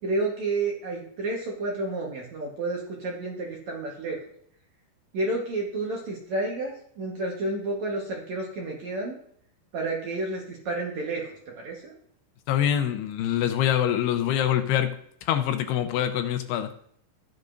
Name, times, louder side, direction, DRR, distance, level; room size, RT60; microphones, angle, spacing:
voice 1, 0.0-4.2 5.1-9.2 9.7-11.3 11.5-11.9, right 2 dB, 70° right, -2 dB, 1.7 m, -30 dB
voice 2, 12.5-15.0 15.2-16.7, left 10 dB, 80° left, 7 dB, 2.5 m, -25 dB
16.0 x 6.7 x 2.6 m, 0.64 s
omnidirectional pair, 5.3 m